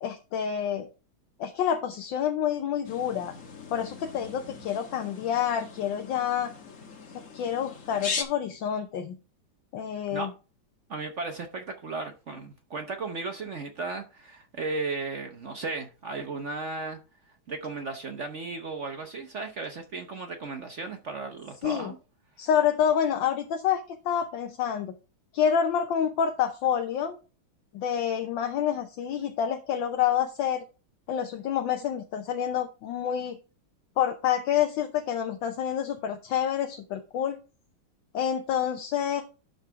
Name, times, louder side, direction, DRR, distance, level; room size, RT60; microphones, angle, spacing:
voice 1, 0.0-0.9 1.4-3.3 3.7-6.5 7.1-9.2 9.7-10.3 21.6-21.9 22.4-24.9 25.3-27.2 27.7-30.6 31.1-33.4 34.0-37.3 38.1-39.2, left 9 dB, 75° left, 1.5 m, -28 dB
sound 1, 2.8-8.2, left 5 dB, 45° left, 1.4 m, -39 dB
voice 2, 10.9-17.0 17.5-22.0, right 3 dB, 55° right, 0.8 m, -35 dB
11.5 x 4.0 x 4.6 m
omnidirectional pair, 2.2 m